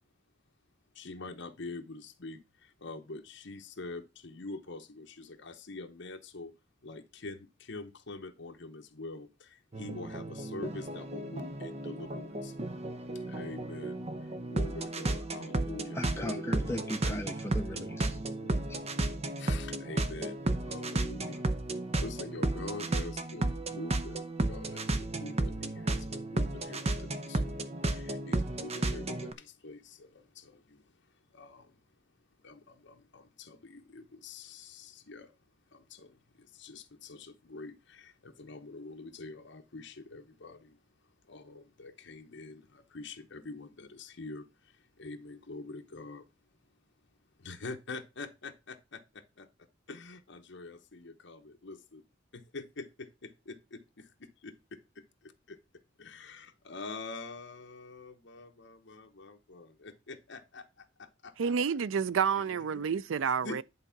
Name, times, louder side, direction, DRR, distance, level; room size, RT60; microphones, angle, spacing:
voice 1, 0.9-6.5 6.8-12.6 13.2-16.9 18.1-18.9 19.4-21.4 21.7-30.9 31.3-31.8 32.4-35.3 35.7-40.8 41.3-46.3 47.4-52.0 52.3-55.6 56.0-61.3 62.3-62.8 63.4-63.6, left 3 dB, 65° left, 1.0 m, -45 dB
sound 1, 9.7-29.3, right 2 dB, 35° right, 0.8 m, -33 dB
voice 2, 15.9-18.2 18.7-18.8, left 1 dB, 15° left, 0.7 m, -38 dB
voice 3, 61.4-63.6, right 6 dB, 90° right, 0.4 m, -29 dB
10.5 x 3.7 x 5.8 m
head